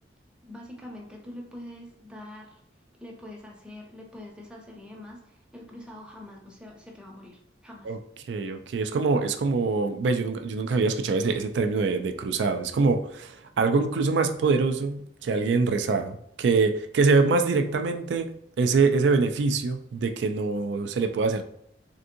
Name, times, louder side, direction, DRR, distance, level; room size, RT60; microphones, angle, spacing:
voice 1, 0.4-2.6 3.0-7.9, left 1 dB, 5° right, -1 dB, 0.7 m, -44 dB
voice 2, 8.3-18.3 18.6-21.4, right 4 dB, 70° right, 7 dB, 0.3 m, -24 dB
3.5 x 2.6 x 2.6 m, 0.73 s
head